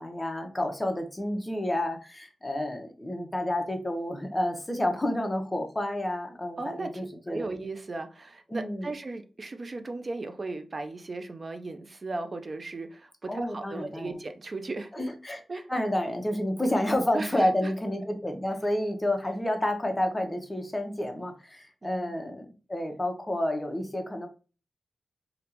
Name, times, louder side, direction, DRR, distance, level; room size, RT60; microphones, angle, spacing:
voice 1, 0.0-7.5 8.5-8.9 13.3-14.2 14.9-15.4 15.7-24.3, left 1 dB, 20° left, 0.8 m, -30 dB
voice 2, 6.6-15.1 15.5-15.7 17.1-17.7 21.8-22.1, right 3 dB, 50° right, 0.5 m, -37 dB
3.4 x 2.4 x 2.9 m
cardioid pair, 55°, 0 cm